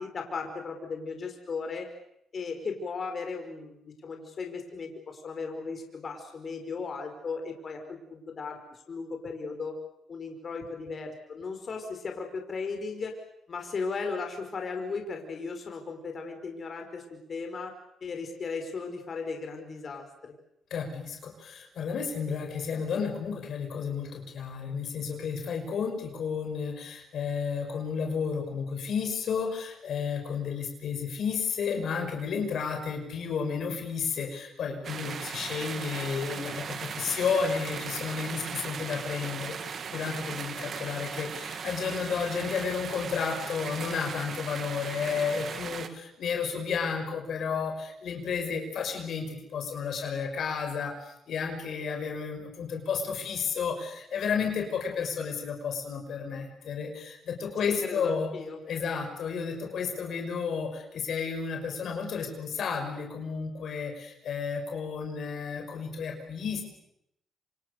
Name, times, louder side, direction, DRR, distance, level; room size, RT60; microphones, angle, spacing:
voice 1, 0.0-1.9 2.3-9.8 10.1-13.2 13.5-17.7 18.0-20.1 57.6-58.6, left 4 dB, 50° left, 4 dB, 5.4 m, -36 dB
voice 2, 20.7-58.3 58.6-66.6, left 6 dB, 70° left, 4 dB, 5.7 m, -32 dB
sound 1, 34.8-45.9, right 6 dB, 60° right, 2.4 m, -38 dB
27.5 x 27.0 x 6.8 m, 0.78 s
supercardioid pair, 65°, 0 cm